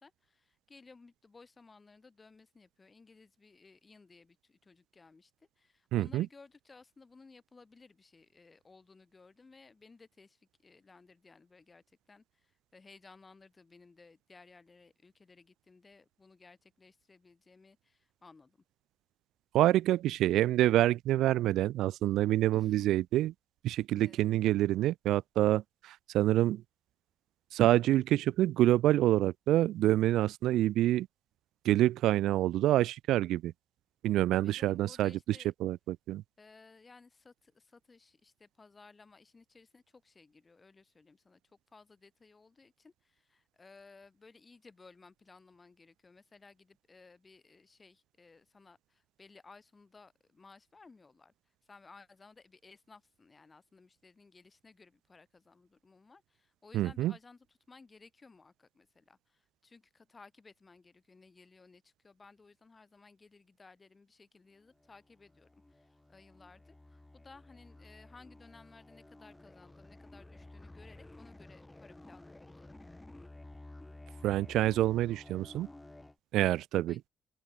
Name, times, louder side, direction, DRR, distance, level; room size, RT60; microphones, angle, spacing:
voice 1, 0.0-18.6 22.5-22.9 24.0-24.3 34.3-35.5 36.4-73.0 76.9-77.0, left 4 dB, 30° left, 4.3 m, -58 dB
voice 2, 5.9-6.3 19.5-23.3 23.6-26.6 27.5-31.1 31.6-33.5 34.0-36.2 56.7-57.1 74.2-75.7 76.3-77.0, right 14 dB, 85° right, 0.5 m, -27 dB
sound 1, 64.7-76.2, left 2 dB, 15° left, 2.5 m, -53 dB
open air
cardioid pair, 90°, 0 cm